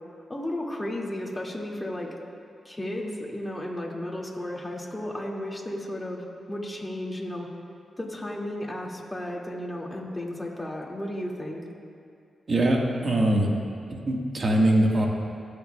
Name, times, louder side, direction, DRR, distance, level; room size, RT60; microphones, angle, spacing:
voice 1, 0.3-2.1 2.6-7.5 8.0-11.6, left 1 dB, 15° left, -2 dB, 2.1 m, -34 dB
voice 2, 12.5-13.5 13.9-15.1, right 1 dB, 50° right, 0 dB, 1.5 m, -22 dB
20.0 x 6.7 x 2.3 m, 2.4 s
supercardioid pair, 45°, 0 cm